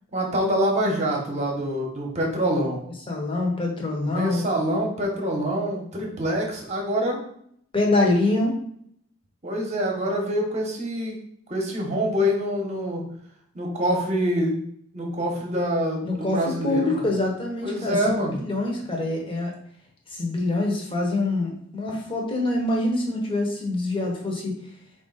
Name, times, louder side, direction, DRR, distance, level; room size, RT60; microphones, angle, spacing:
voice 1, 0.1-2.8 4.0-7.2 9.4-11.2 11.5-13.0 13.5-14.6 14.9-17.1 17.6-18.4, equal, 35° right, 0 dB, 0.9 m, -25 dB
voice 2, 3.1-4.4 7.7-8.6 16.0-18.0 18.3-19.5 20.1-24.5, left 2 dB, 25° left, 0 dB, 0.9 m, -25 dB
4.4 x 2.6 x 3.9 m, 0.67 s
head